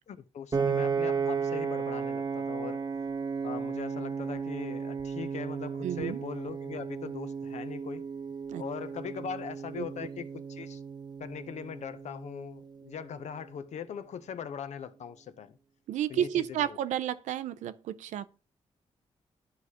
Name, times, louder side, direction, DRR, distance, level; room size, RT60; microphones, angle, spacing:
voice 1, 0.1-2.8 3.4-8.1 8.6-10.8 11.2-15.6 16.1-16.8, left 7 dB, 70° left, 0.6 m, -40 dB
Piano, 0.5-12.8, right 5 dB, 35° right, 0.7 m, -34 dB
voice 2, 5.8-6.2 8.5-8.6 9.8-9.9 15.9-18.3, right 10 dB, 90° right, 0.4 m, -31 dB
12.0 x 4.8 x 2.8 m
cardioid pair, 55°, 12 cm